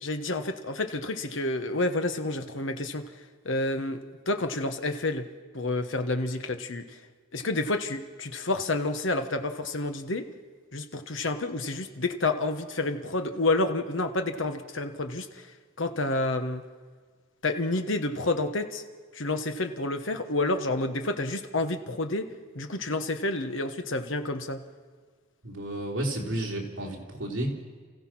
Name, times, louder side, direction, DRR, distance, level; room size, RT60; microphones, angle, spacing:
voice 1, 0.0-5.3 5.5-7.0 7.3-10.3 10.7-16.6 17.4-18.8 19.1-24.6, left 2 dB, 65° left, 7 dB, 1.2 m, -29 dB
voice 2, 25.4-27.5, right 1 dB, 60° right, -1 dB, 3.6 m, -31 dB
28.5 x 15.0 x 6.1 m, 1.6 s
head